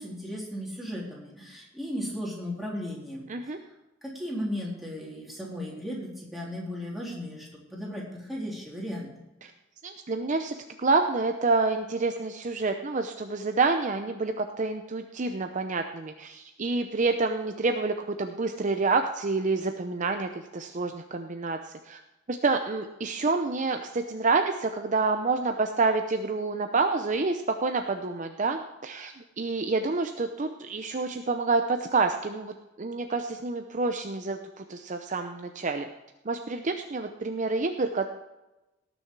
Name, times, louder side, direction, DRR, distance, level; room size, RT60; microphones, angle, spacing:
voice 1, 0.0-3.2 4.0-9.1, equal, ahead, -5 dB, 3.5 m, -36 dB
voice 2, 9.8-22.0 22.3-35.9 36.2-38.1, right 3 dB, 40° right, 6 dB, 0.7 m, -28 dB
18.0 x 7.0 x 4.7 m, 1.0 s
head